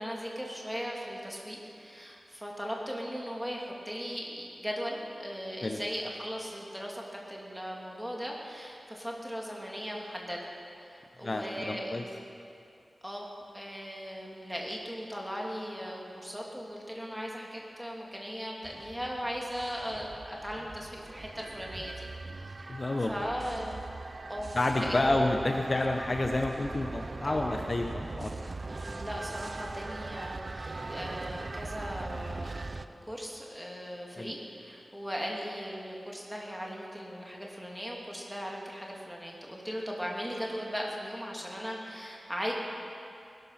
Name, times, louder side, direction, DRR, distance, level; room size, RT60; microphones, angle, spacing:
voice 1, 0.0-10.4 10.8-12.0 13.0-13.2 13.5-22.1 22.5-22.8 23.1-23.8 24.3-25.3 27.2-27.6 28.8-42.5, equal, 5° right, -2 dB, 2.9 m, -38 dB
voice 2, 11.2-12.0 22.7-23.2 24.5-28.3 34.2-34.3, left 2 dB, 40° left, 3 dB, 0.9 m, -29 dB
sound 1, 18.6-32.9, right 3 dB, 50° right, 0.6 m, -40 dB
20.0 x 12.5 x 5.9 m, 2.6 s
wide cardioid pair, 85°, 0 cm